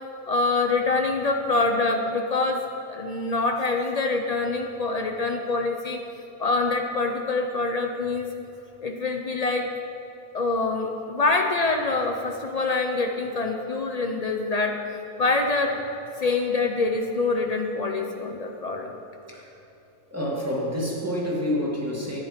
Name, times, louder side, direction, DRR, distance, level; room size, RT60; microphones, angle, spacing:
voice 1, 0.3-2.6 2.9-6.0 6.4-8.3 8.8-9.6 10.3-14.7 15.2-15.8 16.2-19.0, left 3 dB, 80° left, 3 dB, 0.3 m, -25 dB
voice 2, 20.1-22.2, equal, 10° right, -4 dB, 2.1 m, -28 dB
14.5 x 9.8 x 5.1 m, 2.9 s
omnidirectional pair, 1.7 m